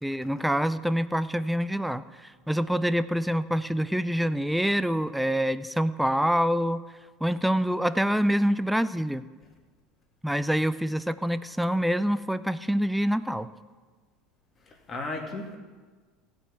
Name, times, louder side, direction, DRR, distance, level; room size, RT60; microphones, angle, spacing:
voice 1, 0.0-6.8 7.2-9.2 10.2-13.5, equal, ahead, 15 dB, 0.5 m, -26 dB
voice 2, 14.7-15.6, left 2 dB, 30° left, 1 dB, 2.4 m, -35 dB
16.0 x 5.4 x 8.2 m, 1.4 s
supercardioid pair, 95°, 0 cm